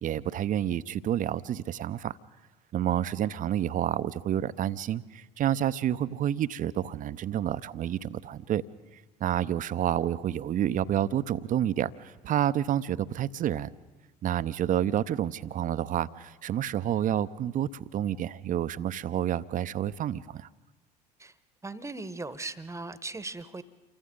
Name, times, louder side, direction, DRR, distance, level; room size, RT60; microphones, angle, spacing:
voice 1, 0.0-2.2 2.7-8.6 9.2-13.7 14.2-20.5, right 11 dB, 40° right, 15 dB, 0.7 m, -29 dB
voice 2, 21.6-23.6, right 3 dB, 15° right, 14 dB, 1.1 m, -38 dB
28.5 x 24.0 x 3.8 m, 1.2 s
figure-of-eight pair, 60°, 21 cm